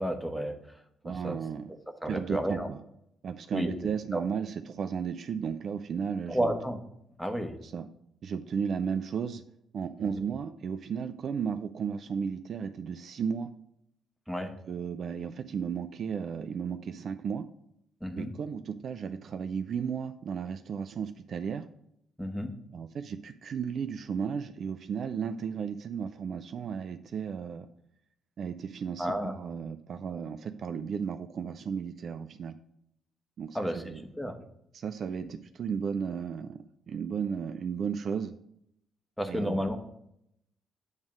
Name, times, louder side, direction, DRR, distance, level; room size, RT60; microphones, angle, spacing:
voice 1, 0.0-1.4 2.0-2.7 3.5-3.7 4.1-4.2 6.3-6.8 7.2-7.5 10.0-10.2 14.3-14.5 18.0-18.3 22.2-22.5 29.0-29.3 33.5-33.8 34.1-34.4 39.2-39.7, equal, ahead, 4 dB, 1.2 m, -31 dB
voice 2, 1.0-1.7 2.1-2.8 3.2-6.5 7.6-7.9 8.2-9.4 9.7-13.5 14.7-17.4 18.1-21.7 22.7-27.7 28.4-32.6 33.4-34.0 34.7-38.3 39.3-39.6, right 6 dB, 50° right, 9 dB, 0.4 m, -34 dB
7.9 x 3.5 x 6.2 m, 0.75 s
figure-of-eight pair, 45°, 0 cm